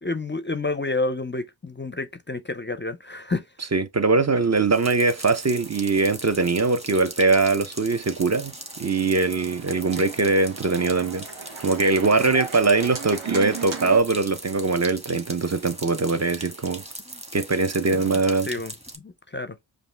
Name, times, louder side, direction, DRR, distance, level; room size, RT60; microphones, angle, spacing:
voice 1, 0.0-3.4 12.2-12.4 17.1-17.2 17.9-18.1 18.5-19.6, left 2 dB, 25° left, 0.4 m, -30 dB
voice 2, 3.7-8.5 8.8-11.3 11.6-16.8 17.3-18.5, right 3 dB, 35° right, 0.5 m, -22 dB
sound 1, 4.7-19.0, right 1 dB, 15° right, 1.1 m, -40 dB
Organ, 8.2-14.0, right 5 dB, 90° right, 1.1 m, -37 dB
5.1 x 2.6 x 3.2 m
wide cardioid pair, 45°, 47 cm